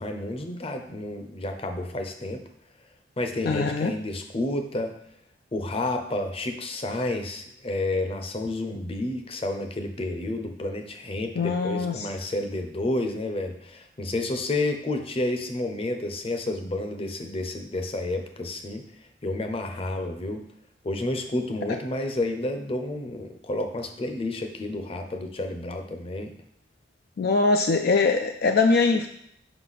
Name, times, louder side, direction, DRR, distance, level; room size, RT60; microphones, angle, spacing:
voice 1, 0.0-2.4 3.2-4.9 5.5-18.8 19.2-20.4 20.8-26.3, left 2 dB, 30° left, 5 dB, 0.7 m, -30 dB
voice 2, 3.4-3.9 11.3-12.1 21.7-21.8 27.2-29.1, left 4 dB, 60° left, 5 dB, 0.4 m, -22 dB
5.8 x 5.4 x 4.1 m, 0.73 s
head